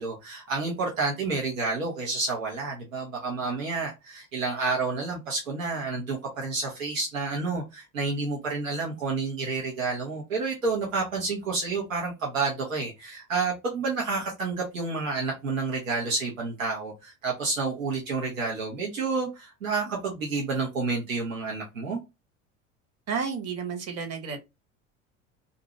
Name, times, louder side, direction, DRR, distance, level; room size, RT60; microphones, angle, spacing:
voice 1, 0.0-22.0, right 3 dB, 85° right, 1.0 m, -29 dB
voice 2, 23.1-24.4, right 6 dB, 40° right, 1.1 m, -31 dB
2.6 x 2.5 x 3.0 m
hypercardioid pair, 70°, 39 cm